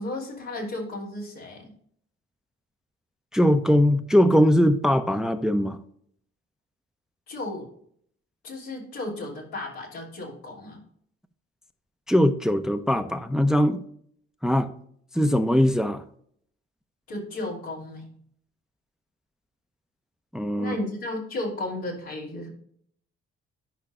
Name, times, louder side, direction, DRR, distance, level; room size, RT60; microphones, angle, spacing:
voice 1, 0.0-1.7 7.3-7.7 8.4-10.8 17.1-18.1 20.6-22.5, left 2 dB, 80° left, -5 dB, 3.1 m, -34 dB
voice 2, 3.3-5.8 12.1-13.8 14.4-14.7 15.1-16.0 20.3-20.8, equal, ahead, 9 dB, 0.7 m, -21 dB
10.5 x 5.8 x 2.5 m, 0.64 s
hypercardioid pair, 40°, 34 cm